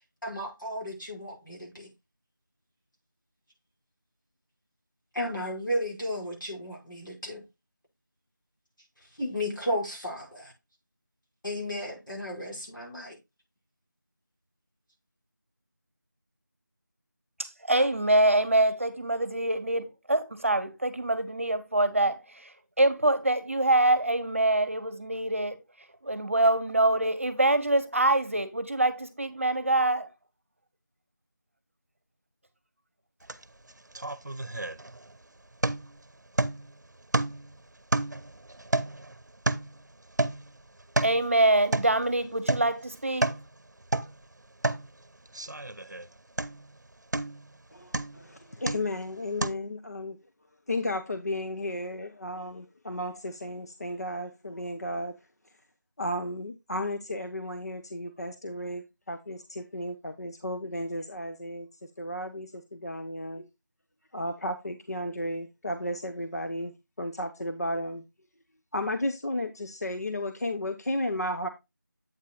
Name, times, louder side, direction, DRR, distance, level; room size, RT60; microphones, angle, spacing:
voice 1, 0.2-1.9 5.1-7.4 9.2-10.5 11.4-13.2, equal, 90° left, 5.4 m, -33 dB
voice 2, 17.4-22.5 22.8-25.6 26.0-30.1 41.0-43.3, right 1 dB, 45° right, 0.9 m, -25 dB
sound 1, 33.3-33.4 33.7-35.2 35.6-36.0 36.4-36.7 37.1-37.5 37.9-39.8 40.2-40.5 40.8-41.2 41.7-42.0 42.5-42.7 43.0-43.5 43.8-44.2 44.6-44.9 45.3-46.1 46.4-46.7 47.1-47.5 47.9-48.2 48.7-49.0 49.4-49.5, right 2 dB, 65° right, 0.7 m, -30 dB
voice 3, 47.7-50.2 50.7-55.1 56.0-61.7 62.0-63.5 64.1-68.0 68.7-71.5, left 1 dB, 55° left, 0.7 m, -33 dB
8.2 x 8.2 x 2.3 m
figure-of-eight pair, 170°, 10 cm